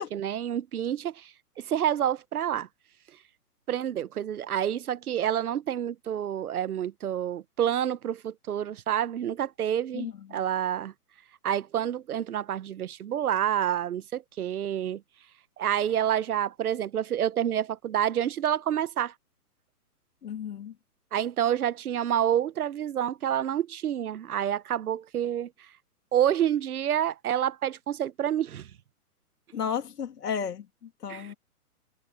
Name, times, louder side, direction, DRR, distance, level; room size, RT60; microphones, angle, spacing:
voice 1, 0.0-2.7 3.7-10.9 11.4-15.0 15.6-19.1 21.1-25.7 26.1-28.7 31.1-31.3, right 10 dB, 70° right, 1.1 m, -28 dB
voice 2, 20.2-20.7 29.5-30.6 31.0-31.3, left 7 dB, 80° left, 2.9 m, -32 dB
hypercardioid pair, 160°, 46 cm